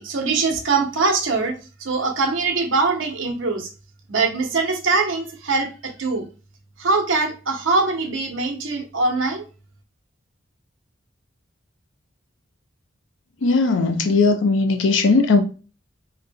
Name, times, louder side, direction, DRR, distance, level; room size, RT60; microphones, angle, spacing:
voice 1, 0.0-1.5 1.8-3.7 4.1-5.7 6.0-6.2 6.8-9.4, right 3 dB, 85° right, 0.9 m, -22 dB
voice 2, 13.4-15.4, left 3 dB, 80° left, 0.6 m, -18 dB
3.7 x 2.2 x 3.4 m
head